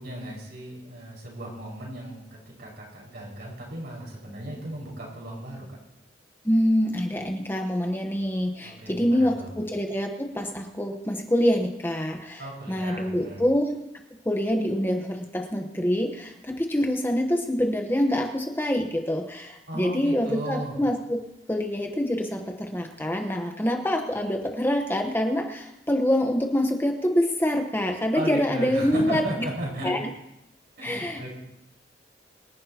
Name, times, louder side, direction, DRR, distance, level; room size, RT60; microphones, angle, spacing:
voice 1, 0.0-5.8 8.6-9.6 12.4-13.4 19.7-20.8 28.1-30.0 30.8-31.3, right 1 dB, 65° right, -3 dB, 5.4 m, -36 dB
voice 2, 6.4-13.7 14.2-21.2 21.5-29.2 29.8-30.0 30.8-31.3, equal, 10° left, 3 dB, 1.0 m, -25 dB
25.0 x 11.0 x 2.9 m, 0.88 s
head